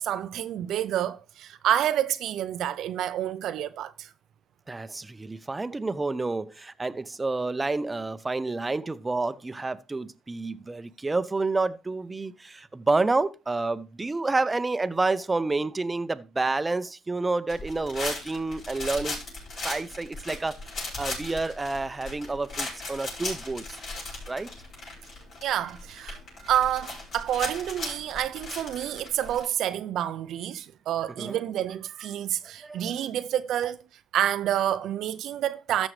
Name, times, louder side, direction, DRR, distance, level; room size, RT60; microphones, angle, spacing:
voice 1, 0.0-4.1 25.4-33.8 34.1-35.9, right 11 dB, 80° right, 0.5 m, -28 dB
voice 2, 4.7-19.2 19.6-20.6 21.0-23.8 24.3-24.5 31.2-31.4 32.6-32.9, right 3 dB, 20° right, 0.6 m, -29 dB
sound 1, 17.5-29.4, left 2 dB, 60° left, 6.2 m, -37 dB
14.0 x 6.2 x 3.2 m
cardioid pair, 90°, 0 cm